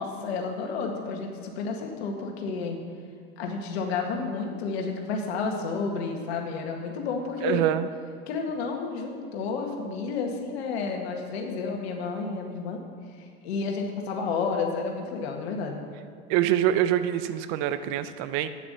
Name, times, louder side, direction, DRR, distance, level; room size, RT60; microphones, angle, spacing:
voice 1, 0.0-2.8 3.4-7.6 8.3-12.8 13.1-15.8, left 4 dB, 75° left, 2 dB, 1.9 m, -31 dB
voice 2, 7.4-7.9 16.3-18.5, right 12 dB, 60° right, 12 dB, 0.9 m, -25 dB
11.0 x 9.5 x 6.8 m, 2.1 s
hypercardioid pair, 85°, 32 cm